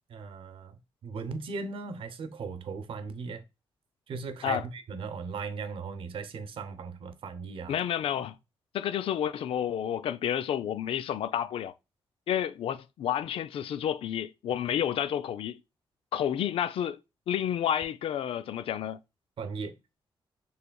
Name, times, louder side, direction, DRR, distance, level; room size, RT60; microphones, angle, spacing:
voice 1, 0.1-3.4 4.1-7.7 19.4-19.7, right 5 dB, 70° right, 0.8 m, -38 dB
voice 2, 7.7-8.4 8.7-11.7 12.3-15.6 16.1-17.0 17.3-19.0, left 10 dB, 90° left, 0.4 m, -30 dB
6.8 x 3.3 x 2.3 m
wide cardioid pair, 140°, 9 cm